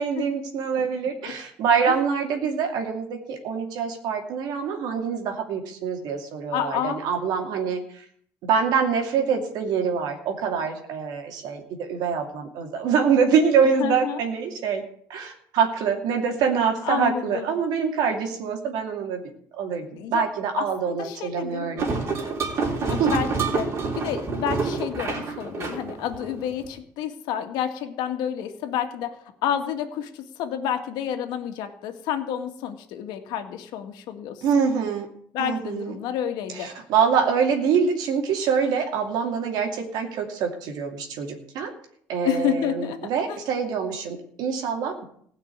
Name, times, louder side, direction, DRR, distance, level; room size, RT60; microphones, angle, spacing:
voice 1, 0.0-7.8 8.4-14.8 15.1-19.2 19.6-21.9 23.0-23.1 34.4-35.1 35.4-35.9 36.6-41.7 42.1-45.1, right 6 dB, 70° right, 3 dB, 2.6 m, -25 dB
voice 2, 6.5-7.0 13.6-14.2 16.8-17.5 20.0-20.2 20.6-21.7 22.9-23.7 24.0-29.2 29.4-34.6 35.3-36.7 42.2-43.0 43.3-43.4, left 9 dB, 75° left, 6 dB, 2.0 m, -29 dB
sound 1, 21.8-26.7, right 4 dB, 40° right, 3.8 m, -28 dB
16.5 x 5.9 x 9.7 m, 0.64 s
cardioid pair, 135°, 7 cm